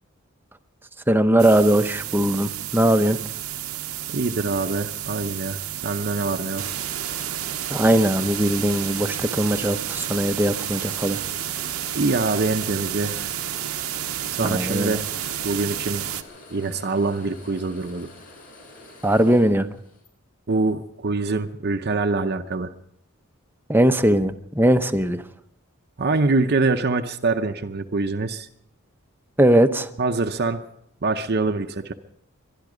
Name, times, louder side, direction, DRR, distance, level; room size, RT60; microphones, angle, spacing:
voice 1, 1.1-3.2 7.7-11.2 14.4-14.9 19.0-19.7 23.7-25.2 29.4-29.9, right 1 dB, 10° right, 9 dB, 0.7 m, -20 dB
sound 1, 1.4-16.2, right 11 dB, 85° right, 0.9 m, -31 dB
voice 2, 4.1-6.6 11.9-13.3 14.3-15.0 15.4-16.1 16.5-18.1 20.5-22.7 26.0-28.5 30.0-30.6 31.0-31.9, right 3 dB, 50° right, 5 dB, 0.7 m, -24 dB
sound 2, 4.6-20.1, left 2 dB, 45° left, 6.9 m, -46 dB
23.0 x 12.0 x 5.0 m, 0.73 s
head